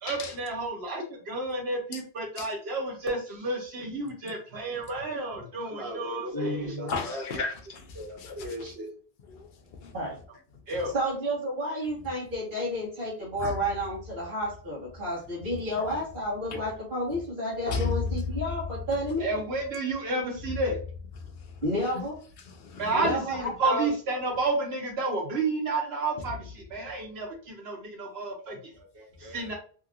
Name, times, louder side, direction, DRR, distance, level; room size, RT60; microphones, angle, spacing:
voice 1, 0.0-7.2 8.0-8.9 10.7-10.9 19.2-20.8 22.8-29.6, right 2 dB, 80° right, 1.3 m, -31 dB
voice 2, 6.3-7.0 9.9-10.1 10.9-19.3 21.6-22.2 22.9-23.9, equal, 55° right, 1.3 m, -31 dB
voice 3, 6.9-8.7 9.3-10.0 10.7-10.9 13.4-13.6 15.4-15.8 16.5-16.6 17.7-18.2 21.2-21.6 21.9-22.0 22.4-23.1, left 4 dB, 60° left, 0.8 m, -35 dB
2.9 x 2.8 x 2.4 m
omnidirectional pair, 1.0 m